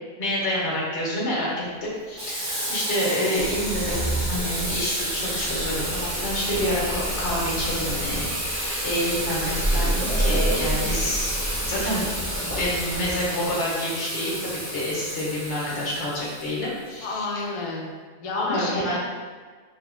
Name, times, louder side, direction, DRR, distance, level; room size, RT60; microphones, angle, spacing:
voice 1, 0.2-11.3 11.7-12.1 12.4-17.3 18.3-19.0, left 1 dB, 90° left, -6 dB, 1.2 m, -28 dB
Water tap faucet / Sink (filling or washing), 2.2-16.9, right 1 dB, 50° right, 1.0 m, -31 dB
Sliding door, 3.4-13.5, right 1 dB, 15° right, 0.5 m, -30 dB
voice 2, 17.0-17.9 18.2-19.0, left 2 dB, 60° left, -2 dB, 0.3 m, -30 dB
3.4 x 2.1 x 2.5 m, 1.5 s
omnidirectional pair, 1.1 m